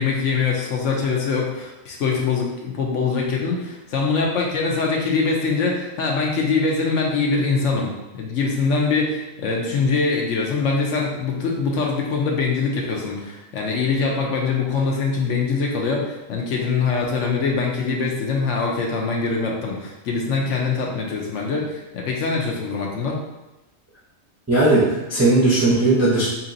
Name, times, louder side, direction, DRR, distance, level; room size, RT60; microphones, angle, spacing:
voice 1, 0.0-23.2, left 4 dB, 65° left, -1 dB, 0.9 m, -23 dB
voice 2, 24.5-26.3, right 2 dB, 20° right, -7 dB, 0.4 m, -17 dB
2.9 x 2.8 x 3.8 m, 1.0 s
omnidirectional pair, 1.4 m